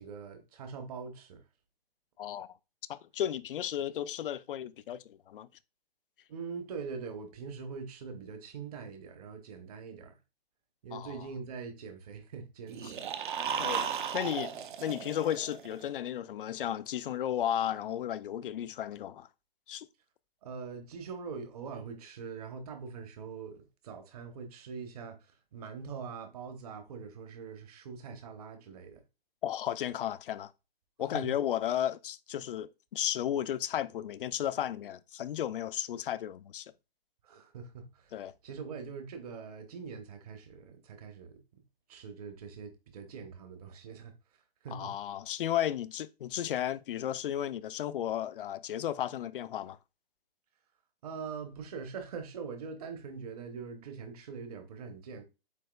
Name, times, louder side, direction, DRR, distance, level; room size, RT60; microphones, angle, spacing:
voice 1, 0.0-1.4 6.3-10.2 10.8-13.0 20.4-29.0 31.1-31.3 37.2-41.6 41.9-44.1 44.6-44.9 51.0-55.2, right 5 dB, 40° right, 1.0 m, -43 dB
voice 2, 2.2-2.5 2.9-5.5 10.9-11.2 13.6-19.3 19.7-19.9 29.4-30.5 31.0-36.7 38.1-38.3 44.7-49.8, left 11 dB, 60° left, 0.4 m, -34 dB
sound 1, 12.7-15.8, right 7 dB, 55° right, 0.6 m, -35 dB
8.0 x 2.8 x 2.3 m
hypercardioid pair, 160°, 30 cm